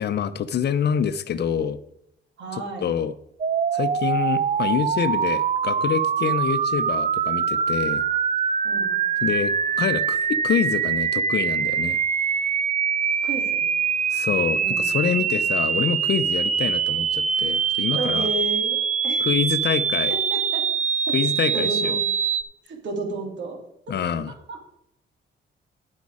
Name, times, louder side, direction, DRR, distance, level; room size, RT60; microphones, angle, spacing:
voice 1, 0.0-1.8 2.8-3.1 3.7-8.0 9.2-12.0 14.1-18.3 19.2-20.1 21.1-21.9 23.9-24.3, left 8 dB, 55° left, 14 dB, 0.7 m, -26 dB
voice 2, 2.4-3.0 8.6-8.9 13.2-13.6 14.6-14.9 17.9-19.3 20.1-20.7 21.1-21.2 21.5-22.1 22.6-23.6 23.9-24.0 24.3-24.7, right 3 dB, 70° right, 1 dB, 3.1 m, -32 dB
sound 1, 3.4-22.4, right 7 dB, 35° right, 0.7 m, -23 dB
9.7 x 8.2 x 4.9 m, 0.79 s
cardioid pair, 90°, 20 cm